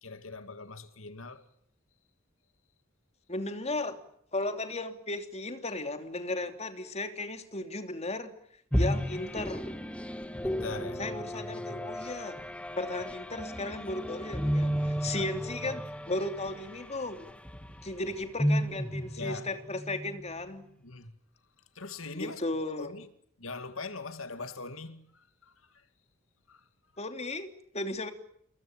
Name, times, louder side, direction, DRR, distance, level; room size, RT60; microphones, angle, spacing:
voice 1, 0.0-1.4 10.4-11.0 15.1-15.3 19.2-19.5 20.8-21.1 21.7-22.4 22.8-23.1 23.4-25.9 26.5-26.7, left 3 dB, 75° left, 2.4 m, -41 dB
voice 2, 3.3-4.0 4.3-8.3 8.7-9.8 11.0-12.4 12.8-17.3 17.8-20.6 22.1-22.9 27.0-28.1, left 2 dB, 30° left, 3.1 m, -35 dB
sound 1, 8.7-20.3, equal, 5° left, 1.7 m, -33 dB
29.0 x 22.0 x 9.0 m
head